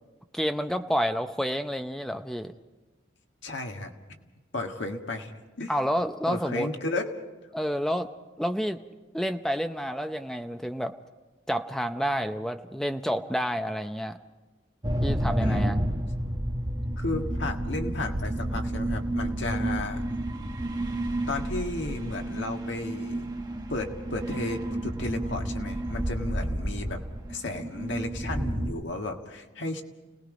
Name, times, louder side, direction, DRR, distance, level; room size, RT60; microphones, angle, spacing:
voice 1, 0.3-2.5 5.7-6.7 7.5-8.1 8.4-8.8 9.1-10.9 11.5-14.2 15.0-15.8, equal, ahead, 7 dB, 0.6 m, -29 dB
voice 2, 3.4-3.9 4.5-5.3 5.6-5.7 6.3-7.2 15.4-15.7 17.0-20.0 21.3-23.2 23.7-27.0 27.3-29.8, left 2 dB, 75° left, 3 dB, 1.7 m, -33 dB
sound 1, 14.8-28.7, right 1 dB, 20° right, 1.2 m, -30 dB
29.5 x 18.5 x 5.1 m, 1.2 s
head